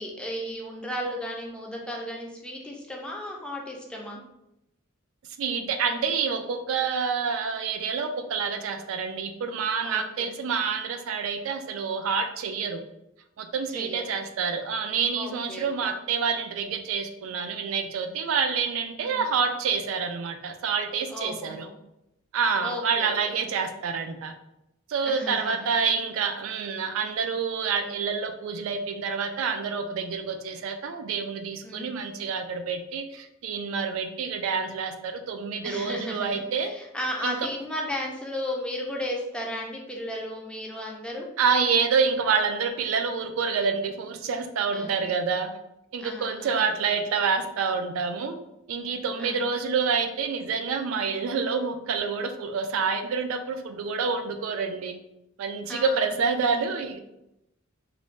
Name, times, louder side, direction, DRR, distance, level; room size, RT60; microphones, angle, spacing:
voice 1, 0.0-4.2 9.8-10.3 13.7-14.0 15.1-15.9 19.0-19.2 21.1-21.7 22.6-23.3 25.0-25.7 27.8-28.1 31.6-31.9 35.6-41.3 44.7-45.0 46.0-46.7 49.2-49.5 55.7-56.0, equal, 5° left, -1 dB, 0.4 m, -35 dB
voice 2, 5.4-12.8 13.4-21.7 22.3-24.3 24.9-36.7 37.2-37.4 41.4-45.5 45.9-48.4 48.7-54.9 55.4-57.0, right 5 dB, 70° right, 8 dB, 0.3 m, -27 dB
2.4 x 2.1 x 3.1 m, 0.86 s
head